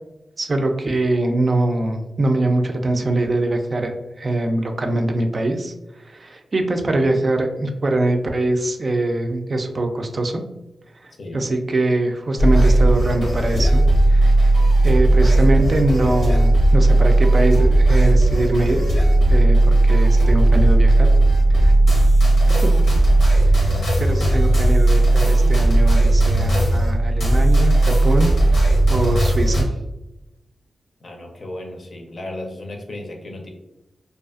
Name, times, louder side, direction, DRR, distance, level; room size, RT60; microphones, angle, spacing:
voice 1, 0.4-5.7 6.0-10.4 11.0-13.8 14.1-14.6 14.8-18.8 19.3-21.1 21.5-21.7 22.6-22.7 23.5-29.7, right 2 dB, 50° right, 4 dB, 0.4 m, -22 dB
sound 1, 12.4-29.6, right 2 dB, 90° left, 0.8 m, -15 dB
voice 2, 31.0-33.5, left 1 dB, 60° left, 2 dB, 0.5 m, -34 dB
2.4 x 2.3 x 2.4 m, 0.95 s
cardioid pair, 50°, 0 cm